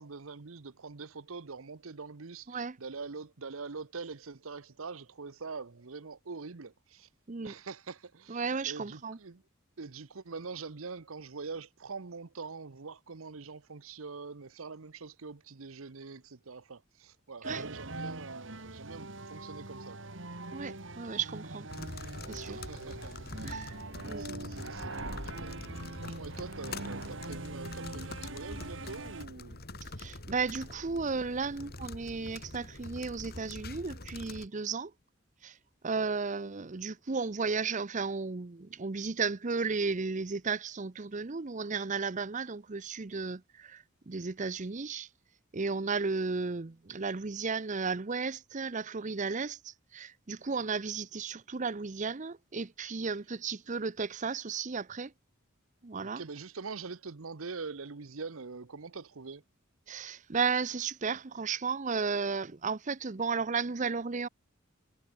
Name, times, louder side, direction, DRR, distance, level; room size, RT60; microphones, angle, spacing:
voice 1, 0.0-7.1 7.4-9.4 9.8-20.1 22.5-29.6 36.1-36.2 56.0-59.4, right 4 dB, 80° right, 0.9 m, -44 dB
voice 2, 8.3-9.2 17.5-17.6 20.5-21.7 22.3-22.6 23.4-23.7 24.0-24.2 30.0-34.9 35.4-35.5 35.8-45.1 45.5-55.1 55.8-56.2 59.9-64.3, right 4 dB, 35° right, 0.7 m, -34 dB
sound 1, 17.4-29.3, right 2 dB, 60° right, 3.1 m, -42 dB
sound 2, 21.7-34.5, left 2 dB, 50° left, 4.6 m, -45 dB
head